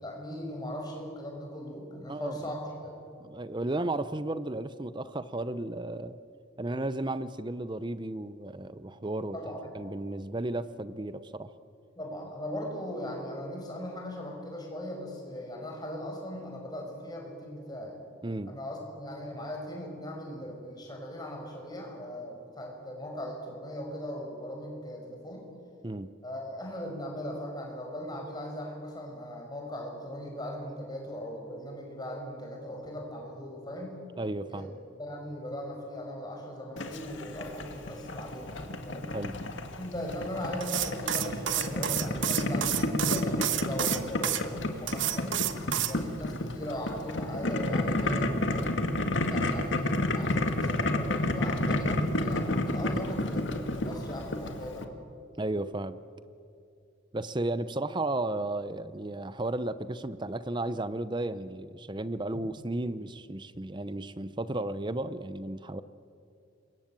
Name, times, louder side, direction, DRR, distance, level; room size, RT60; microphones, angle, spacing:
voice 1, 0.0-3.0 9.3-9.6 12.0-18.0 18.5-25.5 26.2-34.0 34.5-34.7 35.0-39.1 39.8-45.4 45.8-48.7 49.3-54.9, equal, 20° left, 1 dB, 5.8 m, -39 dB
voice 2, 2.1-2.6 3.2-6.2 6.6-9.4 9.7-11.5 18.2-18.6 25.8-26.1 34.2-34.7 39.1-39.4 55.4-56.0 57.1-65.8, right 2 dB, 20° right, 14 dB, 0.6 m, -34 dB
Boiling, 36.8-54.8, left 1 dB, 60° left, 2.0 m, -31 dB
sound 1, 40.6-44.4 44.9-46.0, right 11 dB, 65° right, 1.3 m, -30 dB
27.5 x 23.0 x 9.0 m, 2.5 s
head